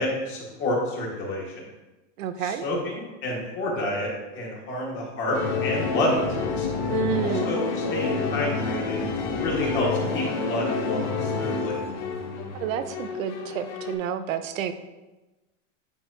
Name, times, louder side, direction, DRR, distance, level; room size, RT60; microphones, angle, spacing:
voice 1, 0.0-1.6 2.4-6.3 6.6-6.7 7.2-7.6 7.9-9.0 9.4-11.8, left 1 dB, 30° left, -3 dB, 1.8 m, -29 dB
voice 2, 2.2-2.7 6.9-7.5 12.6-14.7, right 8 dB, 90° right, 9 dB, 0.7 m, -30 dB
sound 1, 5.3-13.9, left 4 dB, 60° left, 1.2 m, -28 dB
9.3 x 4.3 x 2.8 m, 1.1 s
supercardioid pair, 155°, 38 cm